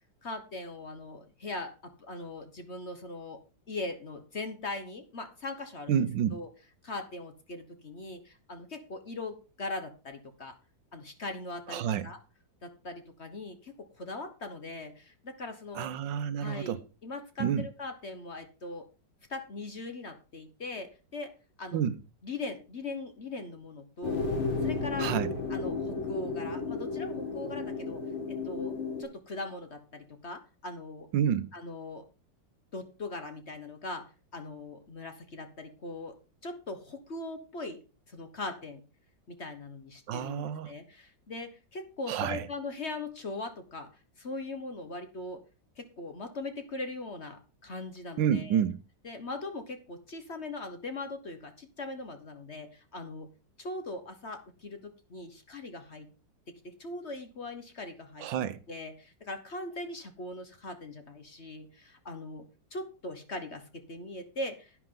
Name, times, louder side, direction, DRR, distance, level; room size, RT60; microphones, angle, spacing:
voice 1, 0.2-3.4 3.7-6.0 6.3-6.5 6.8-10.5 10.9-12.2 12.6-15.9 16.4-16.8 17.0-18.9 19.3-21.3 21.6-21.8 22.2-24.3 24.6-25.1 25.5-28.0 28.3-31.1 31.5-32.0 32.7-34.0 34.3-36.1 36.4-37.8 38.1-38.8 39.3-43.9 44.2-45.4 45.8-48.6 49.0-53.3 53.6-56.1 56.6-58.3 58.7-64.8, left 2 dB, 40° left, 1.2 m, -40 dB
voice 2, 5.9-6.4 11.7-12.1 15.7-16.8 17.4-17.7 21.7-22.0 25.0-25.3 31.1-31.5 40.1-40.7 42.1-42.5 48.2-48.8 58.2-58.6, right 9 dB, 75° right, 1.4 m, -29 dB
sound 1, 24.0-29.0, left 4 dB, 85° left, 2.7 m, -33 dB
10.5 x 9.7 x 3.8 m
omnidirectional pair, 2.1 m